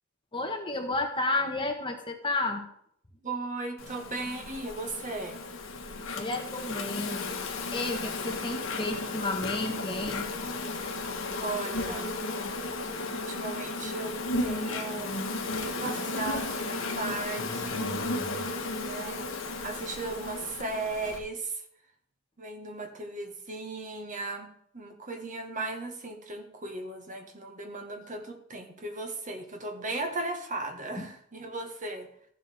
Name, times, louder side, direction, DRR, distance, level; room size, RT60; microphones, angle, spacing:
voice 1, 0.3-2.6 6.1-7.2 7.7-10.3 31.0-31.1, left 2 dB, 25° left, 3 dB, 1.3 m, -31 dB
voice 2, 3.2-5.4 11.4-12.2 13.3-15.2 15.5-17.9 18.8-19.2 19.6-21.6 22.4-32.1, right 3 dB, 40° right, 5 dB, 1.5 m, -36 dB
Insect, 3.8-21.2, left 3 dB, 70° left, 1.5 m, -34 dB
14.5 x 7.6 x 3.5 m, 0.67 s
head